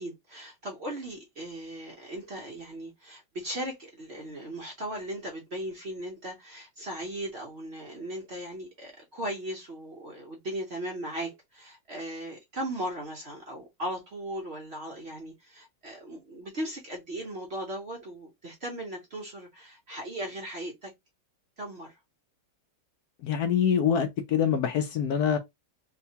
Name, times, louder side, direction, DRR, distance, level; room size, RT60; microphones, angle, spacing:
voice 1, 0.0-20.9 21.6-22.0, right 1 dB, 55° right, 0.7 m, -37 dB
voice 2, 23.2-25.4, left 8 dB, 80° left, 0.8 m, -25 dB
4.4 x 2.2 x 2.8 m
omnidirectional pair, 2.3 m